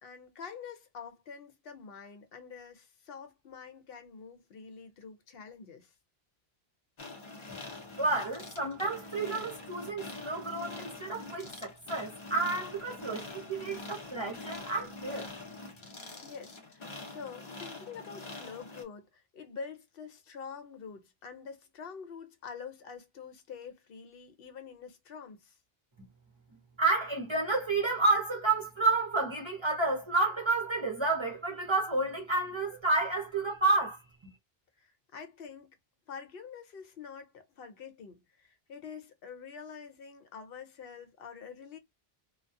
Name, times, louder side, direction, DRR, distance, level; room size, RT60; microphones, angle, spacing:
voice 1, 0.0-5.9 16.2-25.6 34.8-35.8 36.1-41.8, left 6 dB, 70° left, 0.8 m, -46 dB
sound 1, 7.0-18.8, left 3 dB, 35° left, 0.5 m, -45 dB
voice 2, 8.0-15.3 26.8-34.0, right 3 dB, 35° right, 0.6 m, -30 dB
2.2 x 2.1 x 2.5 m
omnidirectional pair, 1.0 m